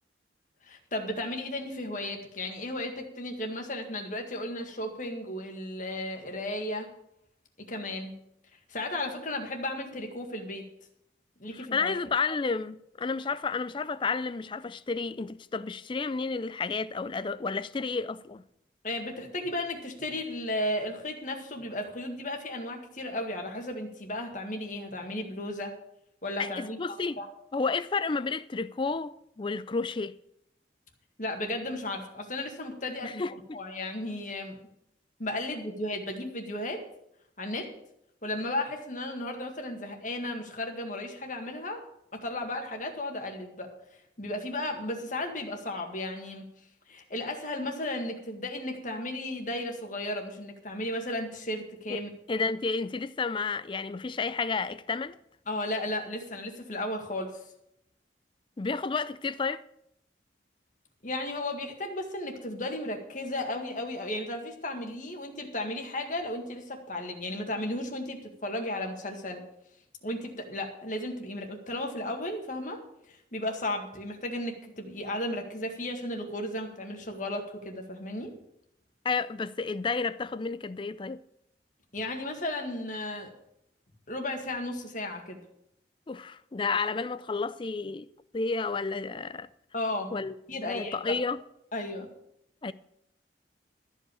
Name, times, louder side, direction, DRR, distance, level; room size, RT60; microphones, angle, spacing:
voice 1, 0.7-6.9 7.6-8.1 8.7-10.6 11.4-11.9 18.8-25.7 26.2-26.8 27.2-27.3 31.2-33.2 33.5-34.6 35.2-36.8 37.4-37.7 38.2-41.8 42.1-43.7 44.2-46.5 46.9-52.1 55.5-57.4 61.0-69.4 70.0-72.8 73.1-78.3 81.9-83.3 84.1-85.4 89.7-90.1 90.5-91.0 91.7-92.1, left 1 dB, 45° left, 1.9 m, -34 dB
voice 2, 11.5-18.4 26.4-27.2 27.5-30.2 33.0-33.6 51.9-52.0 52.3-55.2 58.6-59.6 79.0-81.2 86.1-88.1 88.3-89.5 90.1-90.3 90.6-91.4 92.6-92.7, left 4 dB, 25° left, 0.4 m, -31 dB
13.5 x 5.4 x 8.5 m
head